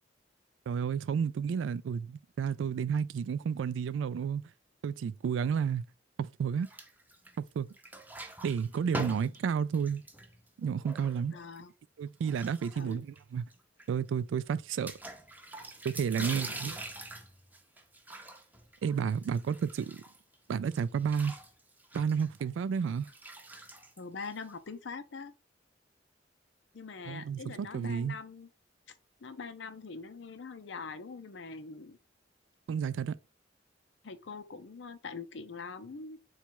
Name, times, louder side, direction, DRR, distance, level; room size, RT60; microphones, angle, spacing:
voice 1, 0.7-4.4 4.8-5.8 6.2-6.7 7.4-7.7 8.4-10.0 10.6-11.3 12.0-13.5 13.9-14.9 15.8-16.8 18.8-20.0 20.5-21.4 21.9-23.1 27.1-28.2 32.7-33.2, right 7 dB, 90° right, 0.3 m, -31 dB
sound 1, 6.6-7.5 7.7-11.6 12.2-13.2 13.5-13.6 13.8-13.9 14.9-20.3 20.7-24.7, right 1 dB, 10° right, 0.5 m, -44 dB
voice 2, 11.3-11.7 12.8-13.0 16.3-16.4 24.0-25.3 26.7-28.5 29.2-32.0 34.0-36.2, left 4 dB, 75° left, 0.6 m, -43 dB
4.1 x 2.3 x 4.5 m
head